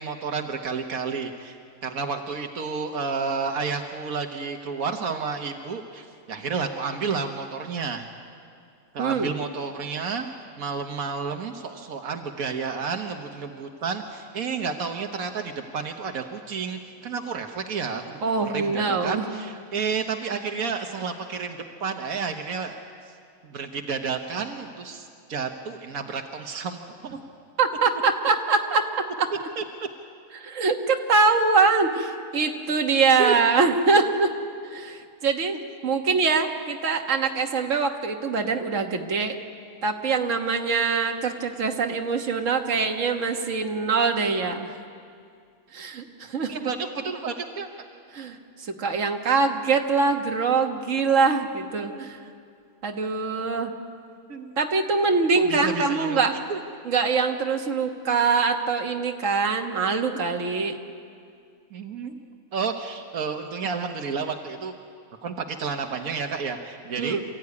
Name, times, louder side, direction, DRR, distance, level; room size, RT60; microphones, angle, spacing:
voice 1, 0.0-1.6 1.8-8.1 8.9-10.3 10.6-22.9 23.4-27.2 29.6-29.7 33.2-33.3 46.5-47.7 51.8-52.1 54.3-54.5 55.3-56.6 61.7-62.1 62.5-64.7 65.2-67.2, right 5 dB, 85° right, 4 dB, 1.6 m, -31 dB
voice 2, 9.0-9.3 18.2-19.2 27.6-28.8 29.2-29.3 30.3-34.4 34.7-35.6 35.8-39.4 39.8-44.7 45.7-46.7 48.1-52.2 52.8-53.7 54.6-56.3 56.9-60.8 67.0-67.2, right 4 dB, 65° right, 3 dB, 1.8 m, -23 dB
27.5 x 14.5 x 9.6 m, 2.3 s
omnidirectional pair, 1.5 m